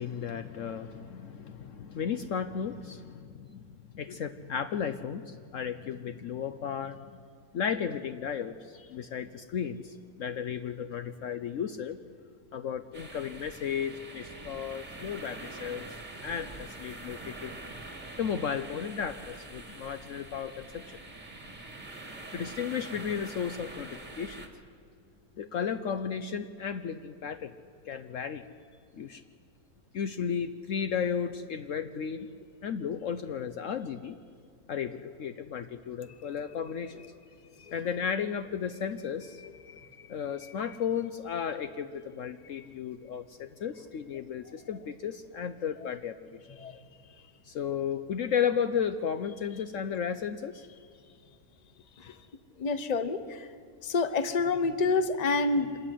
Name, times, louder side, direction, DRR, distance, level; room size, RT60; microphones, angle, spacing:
voice 1, 0.0-7.0 7.5-12.0 12.5-15.9 16.2-17.5 18.2-21.0 22.3-24.4 25.4-27.6 27.9-28.4 28.9-29.2 29.9-32.3 32.6-34.2 34.7-36.9 37.7-39.4 40.1-46.2 47.5-50.6, left 7 dB, 65° left, 10 dB, 1.0 m, -34 dB
sound 1, 12.9-24.5, right 2 dB, 30° right, 2.2 m, -44 dB
voice 2, 39.4-39.8 46.6-46.8 52.0-52.1 52.6-53.5 53.8-55.8, left 3 dB, 30° left, 12 dB, 1.0 m, -28 dB
25.5 x 13.5 x 9.9 m, 2.3 s
omnidirectional pair, 1.6 m